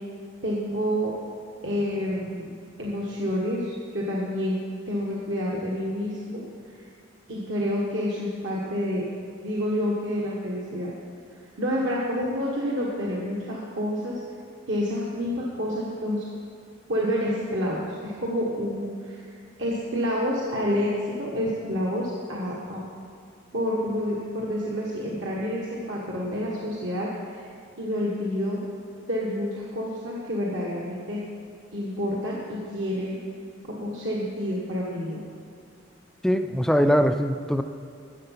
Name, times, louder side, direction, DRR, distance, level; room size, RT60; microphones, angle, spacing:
voice 1, 0.4-1.1 1.6-2.5 2.8-4.6 4.9-6.8 7.3-9.0 9.4-10.9 11.6-14.2 14.7-16.2 16.9-19.3 19.6-22.8 23.5-27.5 27.8-28.6 29.1-31.2 31.7-33.2 33.7-35.2, equal, 65° right, -4 dB, 1.4 m, -28 dB
voice 2, 36.2-37.6, equal, ahead, 8 dB, 0.3 m, -21 dB
13.5 x 8.2 x 5.8 m, 2.4 s
head